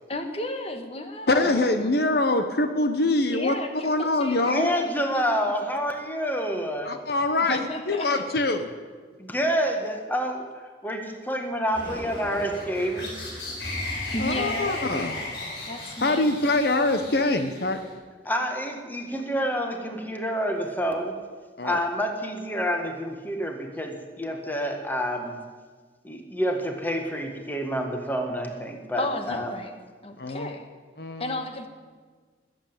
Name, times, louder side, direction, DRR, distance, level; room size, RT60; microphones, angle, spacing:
voice 1, 0.1-1.5 3.3-5.2 7.4-8.1 14.1-14.9 15.7-16.3 29.0-29.7 30.0-30.7 31.2-31.7, left 1 dB, 35° left, 6 dB, 1.5 m, -33 dB
voice 2, 1.3-3.5 3.8-4.7 6.8-8.7 14.2-15.2 16.0-17.8 21.6-21.8 30.2-30.5 31.0-31.4, left 2 dB, 60° left, 7 dB, 1.0 m, -24 dB
voice 3, 4.5-6.9 9.2-10.5 10.8-13.1 18.2-21.1 21.6-25.3 26.0-29.5, equal, 10° left, 4 dB, 1.6 m, -28 dB
sound 1, 11.7-17.9, left 2 dB, 75° left, 4.6 m, -35 dB
20.0 x 8.1 x 8.9 m, 1.5 s
head